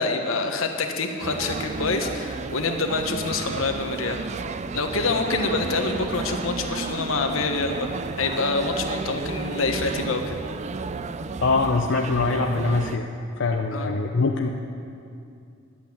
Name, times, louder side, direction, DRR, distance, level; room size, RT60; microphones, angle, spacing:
voice 1, 0.0-4.2 4.7-7.9 8.2-10.4 13.7-13.9, left 3 dB, 80° left, 4 dB, 1.2 m, -26 dB
sound 1, 1.2-13.0, right 4 dB, 35° right, 0.4 m, -32 dB
voice 2, 11.4-13.1 13.4-14.5, left 3 dB, 65° left, 2 dB, 0.6 m, -23 dB
11.0 x 8.4 x 8.8 m, 2.5 s
head